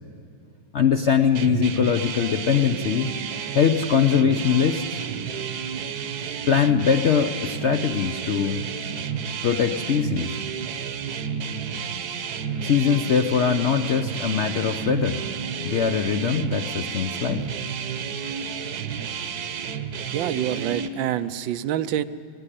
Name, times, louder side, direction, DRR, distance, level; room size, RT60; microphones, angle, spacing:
voice 1, 0.7-3.1 3.5-5.0 6.5-8.7 9.4-10.4 12.6-15.2 15.5-17.5, left 7 dB, 65° left, 7 dB, 0.6 m, -22 dB
sound 1, 1.3-20.9, right 7 dB, 60° right, 1.4 m, -31 dB
voice 2, 20.1-22.0, right 11 dB, 85° right, 13 dB, 1.4 m, -26 dB
19.0 x 16.5 x 10.0 m, 2.5 s
omnidirectional pair, 2.0 m